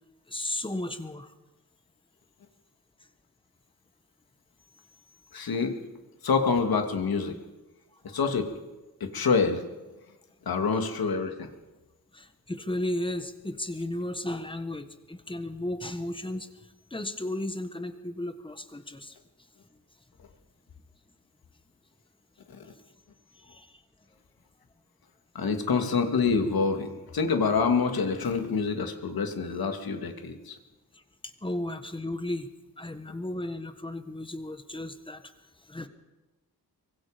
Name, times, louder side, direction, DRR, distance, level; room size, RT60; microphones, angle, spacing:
voice 1, 0.3-1.3 8.0-8.2 12.1-19.2 23.3-23.8 30.9-32.5 32.8-35.9, left 1 dB, 15° left, 9 dB, 1.5 m, -35 dB
voice 2, 5.3-5.8 6.2-7.4 8.1-8.5 9.0-9.6 10.5-11.5 22.5-22.6 25.3-30.6, left 5 dB, 70° left, 5 dB, 2.5 m, -26 dB
24.5 x 22.0 x 5.2 m, 1.1 s
wide cardioid pair, 155°, 38 cm